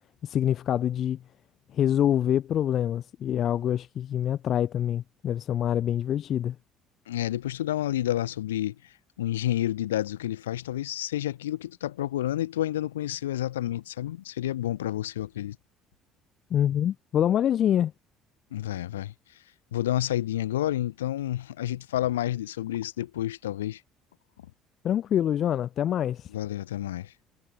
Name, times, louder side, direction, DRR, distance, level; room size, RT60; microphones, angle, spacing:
voice 1, 0.2-1.2 1.7-6.6 16.5-17.9 24.8-26.3, left 10 dB, 50° left, 1.0 m, -25 dB
voice 2, 7.1-15.6 18.5-19.1 19.7-23.8 26.3-27.1, left 13 dB, 75° left, 4.6 m, -30 dB
figure-of-eight pair, 55°, 0 cm